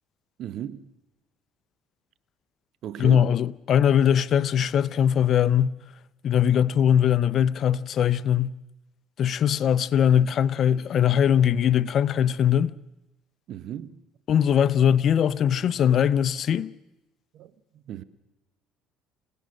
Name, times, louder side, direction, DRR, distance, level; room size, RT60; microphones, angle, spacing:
voice 1, 0.4-0.9 2.8-3.3 13.5-14.0 17.3-18.0, right 10 dB, 60° right, 1.2 m, -36 dB
voice 2, 3.0-5.7 6.2-8.5 9.2-12.7 14.3-16.7, left 9 dB, 50° left, 0.7 m, -21 dB
26.5 x 17.5 x 6.6 m
supercardioid pair, 95°, 0 cm